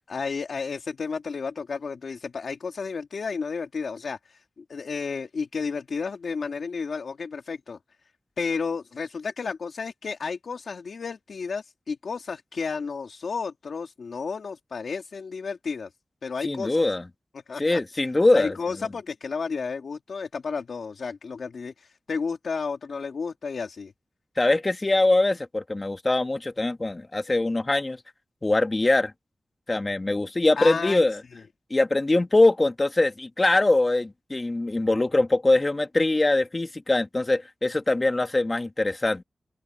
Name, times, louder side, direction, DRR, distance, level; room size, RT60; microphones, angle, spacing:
voice 1, 0.1-7.8 8.4-15.9 16.2-16.8 17.5-17.8 18.3-23.9 30.6-31.0 31.3-31.4, left 5 dB, 85° left, 2.2 m, -32 dB
voice 2, 16.4-17.1 17.6-18.5 24.4-28.0 28.4-29.1 29.7-31.2 31.7-39.2, left 2 dB, 35° left, 1.9 m, -22 dB
open air
wide cardioid pair, 65°, 0 cm